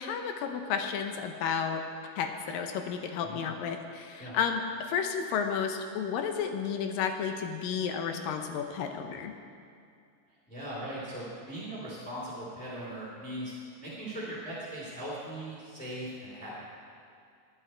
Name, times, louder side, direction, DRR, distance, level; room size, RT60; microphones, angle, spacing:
voice 1, 0.0-1.8 2.2-9.3, left 7 dB, 75° left, 5 dB, 2.5 m, -32 dB
voice 2, 10.5-13.5 13.8-16.5, right 1 dB, ahead, -9 dB, 2.6 m, -39 dB
19.5 x 11.0 x 4.5 m, 2.3 s
omnidirectional pair, 4.1 m